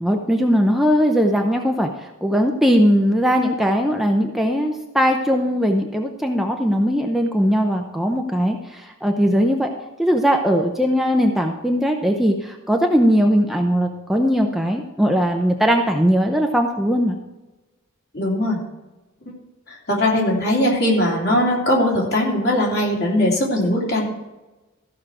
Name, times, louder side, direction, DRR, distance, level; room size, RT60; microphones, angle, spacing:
voice 1, 0.0-1.9 2.2-9.7 10.0-17.2, equal, ahead, 2 dB, 0.6 m, -19 dB
voice 2, 18.1-18.6 19.7-24.1, left 1 dB, 50° left, -3 dB, 3.1 m, -20 dB
14.5 x 6.1 x 4.9 m, 1.1 s
head